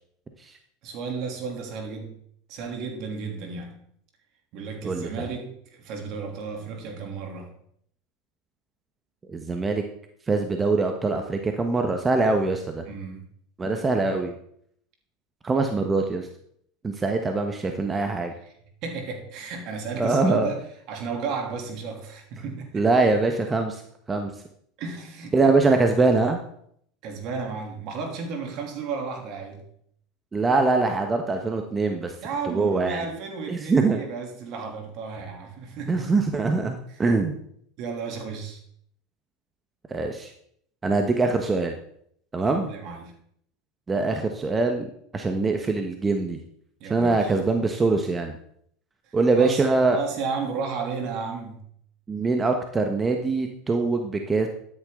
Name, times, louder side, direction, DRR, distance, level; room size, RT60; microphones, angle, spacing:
voice 1, 0.8-2.2 2.5-3.8 4.5-7.5 12.8-13.3 18.8-22.9 24.8-25.4 27.0-29.6 32.2-36.1 36.9-37.0 37.8-38.6 42.5-43.1 46.8-47.3 49.1-51.6, right 5 dB, 55° right, 3 dB, 3.0 m, -33 dB
voice 2, 4.8-5.3 9.3-9.8 10.3-12.8 13.6-14.3 15.4-16.3 16.8-18.3 20.0-20.5 22.7-23.8 24.1-24.3 25.3-26.4 30.3-32.1 32.5-33.0 33.5-34.0 35.9-37.3 39.9-40.3 40.8-41.8 42.3-42.7 43.9-46.4 46.9-48.4 49.1-50.0 52.1-54.5, right 3 dB, 20° right, 5 dB, 1.3 m, -23 dB
13.0 x 9.9 x 3.9 m, 0.67 s
hypercardioid pair, 85°, 0 cm